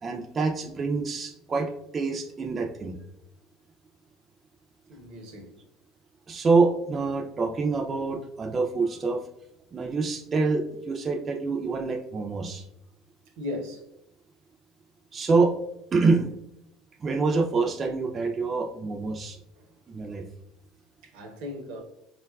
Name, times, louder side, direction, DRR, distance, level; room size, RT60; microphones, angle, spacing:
voice 1, 0.0-3.0 6.3-9.2 9.7-12.6 15.1-15.5 15.9-16.3 17.0-19.4 19.9-20.2, right 4 dB, 30° right, 2 dB, 0.3 m, -26 dB
voice 2, 4.9-5.5 13.4-13.8 19.6-19.7 21.0-21.8, left 1 dB, 80° right, 3 dB, 0.6 m, -37 dB
3.7 x 2.2 x 2.2 m, 0.83 s
supercardioid pair, 90°, 0 cm